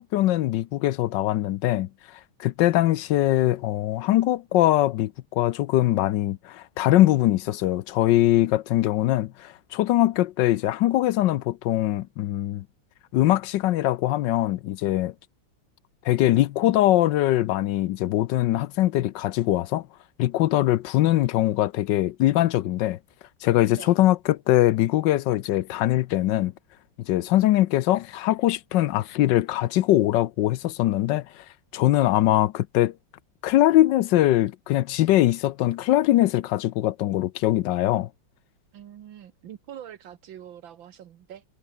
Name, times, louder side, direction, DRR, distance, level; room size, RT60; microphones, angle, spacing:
voice 1, 0.0-1.9 2.4-12.6 13.1-15.1 16.0-19.9 20.2-23.0 23.4-26.5 27.1-31.4 31.7-32.9 33.4-38.1, left 14 dB, 75° left, 1.2 m, -22 dB
voice 2, 38.7-41.4, right 10 dB, 80° right, 1.9 m, -44 dB
omnidirectional pair, 2.1 m